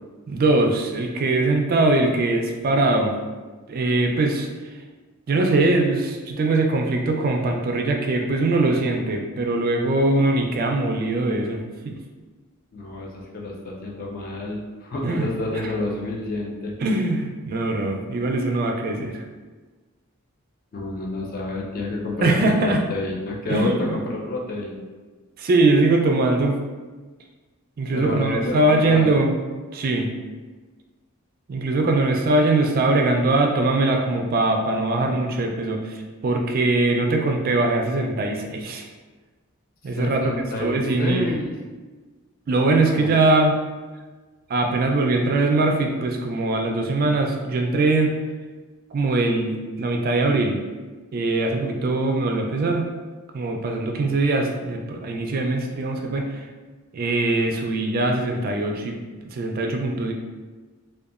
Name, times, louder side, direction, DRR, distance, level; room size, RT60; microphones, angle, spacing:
voice 1, 0.3-3.1 3.7-4.5 5.3-11.9 15.0-15.3 16.8-19.2 22.2-22.8 23.5-23.9 25.4-26.6 27.8-29.3 29.7-30.1 31.5-38.9 39.8-40.2 40.6-41.3 42.5-43.5 44.5-48.2 48.9-50.6 51.1-52.9 53.3-56.5 56.9-60.1, right 2 dB, 40° right, 2 dB, 0.3 m, -21 dB
voice 2, 12.7-16.7 20.7-24.8 27.9-29.2 39.8-41.5 43.0-43.1, left 2 dB, 40° left, -1 dB, 0.4 m, -29 dB
2.8 x 2.2 x 2.4 m, 1.3 s
head